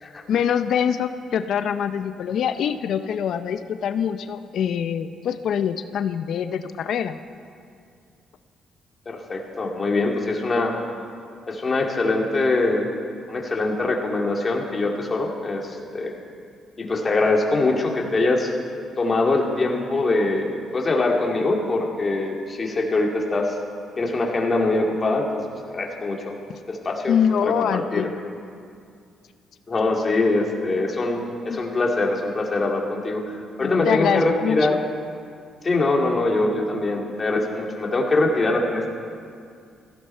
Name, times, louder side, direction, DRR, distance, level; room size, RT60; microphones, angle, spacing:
voice 1, 0.3-7.2 27.1-28.2 31.2-31.6 33.6-34.6, left 8 dB, 70° left, 10 dB, 0.6 m, -24 dB
voice 2, 9.1-10.7 11.5-12.9 13.3-16.1 16.8-18.5 19.0-23.5 24.0-26.4 26.7-27.2 27.4-28.1 29.7-34.7 35.6-38.9, left 2 dB, 35° left, 0 dB, 2.5 m, -23 dB
17.0 x 15.5 x 4.4 m, 2.3 s
cardioid pair, 90°, 0 cm